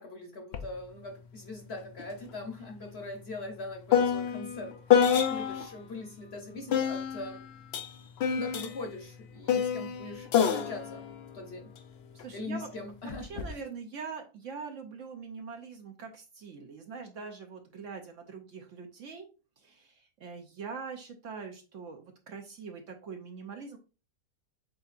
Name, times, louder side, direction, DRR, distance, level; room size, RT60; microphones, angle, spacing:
voice 1, 0.0-4.8 5.1-7.4 8.3-11.0 11.3-11.7 12.3-13.6, left 2 dB, 50° left, 0.8 m, -41 dB
sound 1, 0.5-0.7 1.0-5.8 6.7-12.2 13.1-13.5, left 8 dB, 75° left, 0.5 m, -29 dB
voice 2, 12.1-12.7 13.2-19.3 19.6-23.8, right 5 dB, 60° right, 0.9 m, -43 dB
7.8 x 2.7 x 2.4 m
omnidirectional pair, 1.7 m